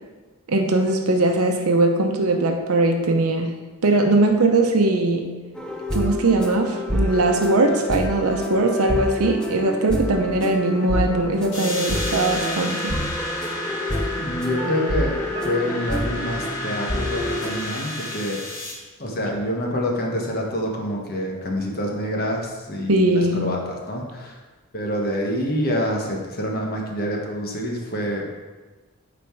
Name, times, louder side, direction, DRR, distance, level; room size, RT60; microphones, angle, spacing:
voice 1, 0.5-3.6 3.8-5.4 5.9-12.9 22.9-23.5, right 2 dB, 85° right, 3 dB, 0.7 m, -20 dB
sound 1, 5.6-17.7, equal, 5° left, 0.5 m, -28 dB
sound 2, 11.5-18.7, left 1 dB, 75° left, 2.1 m, -31 dB
voice 2, 14.2-15.2 15.4-18.6 19.0-24.4 24.7-28.2, equal, 45° left, 0 dB, 1.2 m, -27 dB
sound 3, 14.6-17.5, right 1 dB, 30° right, 0.9 m, -37 dB
8.7 x 4.3 x 4.5 m, 1.3 s
head